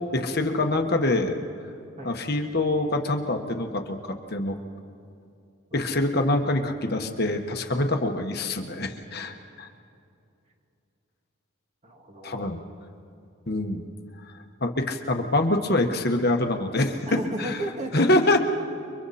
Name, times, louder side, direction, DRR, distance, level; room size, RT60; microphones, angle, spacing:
voice 1, 0.1-1.4 2.0-4.6 5.7-9.7 12.2-12.6 13.5-13.8 14.6-17.0 17.4-17.6 17.9-18.4, left 2 dB, 45° left, 4 dB, 1.4 m, -25 dB
voice 2, 9.1-9.8 11.8-12.5 17.1-18.2, right 1 dB, 30° right, 1 dB, 2.2 m, -36 dB
30.0 x 23.5 x 4.3 m, 2.6 s
head